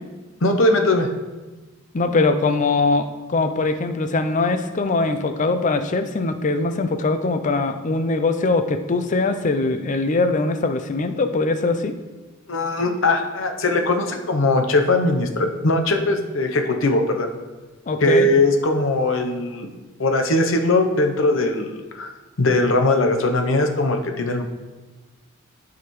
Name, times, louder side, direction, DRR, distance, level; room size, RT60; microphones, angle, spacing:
voice 1, 0.4-1.1 12.5-17.3 18.0-19.7 20.0-22.1 22.4-24.4, left 2 dB, 75° left, 4 dB, 0.8 m, -20 dB
voice 2, 1.9-11.9 17.9-18.3, left 3 dB, 40° left, 8 dB, 0.5 m, -22 dB
11.5 x 4.8 x 3.1 m, 1.2 s
head